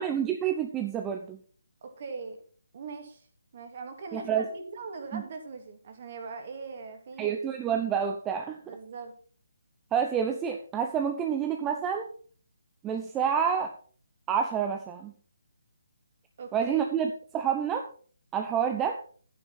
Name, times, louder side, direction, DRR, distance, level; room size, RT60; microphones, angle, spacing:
voice 1, 0.0-1.4 4.1-4.4 5.1-5.2 7.2-8.6 9.9-12.1 12.8-13.7 14.3-15.1 16.5-17.1 17.3-17.9 18.3-19.0, right 8 dB, 15° right, 4 dB, 0.8 m, -28 dB
voice 2, 1.8-2.4 2.7-3.3 3.5-7.4 8.6-9.1 16.4-16.9, right 4 dB, 40° right, 5 dB, 2.7 m, -41 dB
11.0 x 9.7 x 4.4 m, 0.44 s
figure-of-eight pair, 145°, 0 cm